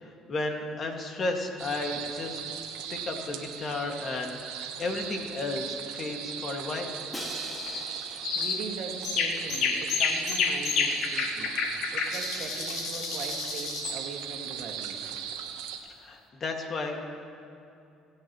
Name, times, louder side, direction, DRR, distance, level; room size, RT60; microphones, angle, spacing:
voice 1, 0.0-2.5 2.9-6.9 16.0-17.0, left 2 dB, 45° left, 2 dB, 1.9 m, -33 dB
sound 1, 1.6-15.8, right 8 dB, 85° right, 1.0 m, -38 dB
Crash cymbal, 7.1-9.1, left 1 dB, 15° left, 1.9 m, -42 dB
sound 2, 7.5-7.9 8.2-8.7 9.0-14.0, left 6 dB, 65° left, 1.2 m, -30 dB
voice 2, 8.4-15.0, right 4 dB, 60° right, 2 dB, 1.9 m, -41 dB
25.0 x 8.7 x 3.1 m, 2.6 s
supercardioid pair, 80°, 0 cm